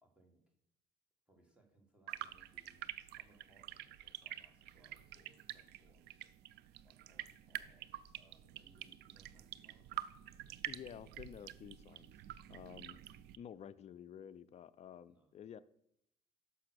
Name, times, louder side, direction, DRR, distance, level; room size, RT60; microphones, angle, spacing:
voice 1, 0.0-0.5 1.3-6.3 6.8-7.9 8.2-9.9 13.0-13.3 15.1-15.3, right 1 dB, 5° right, 1.9 m, -69 dB
sound 1, 2.1-13.4, right 13 dB, 75° right, 0.4 m, -48 dB
voice 2, 10.7-12.1 12.5-13.0 13.4-15.6, left 9 dB, 40° left, 0.4 m, -51 dB
5.9 x 5.7 x 6.2 m
cardioid pair, 110°, 17 cm